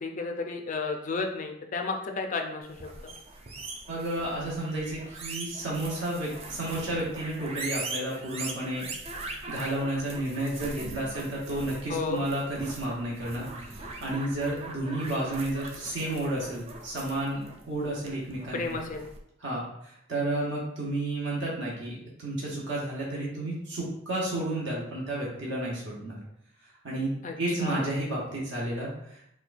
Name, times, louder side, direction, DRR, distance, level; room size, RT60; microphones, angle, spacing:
voice 1, 0.0-2.8 3.0-3.1 11.9-12.2 18.5-19.1 27.2-27.9, left 4 dB, 40° left, 4 dB, 0.4 m, -32 dB
sound 1, 2.7-19.2, right 3 dB, 30° right, 0.4 m, -41 dB
voice 2, 3.9-8.9 9.2-18.8 19.4-26.2 26.8-27.1 27.4-29.2, right 1 dB, 60° right, -4 dB, 0.9 m, -32 dB
4.3 x 2.2 x 2.4 m, 0.75 s
head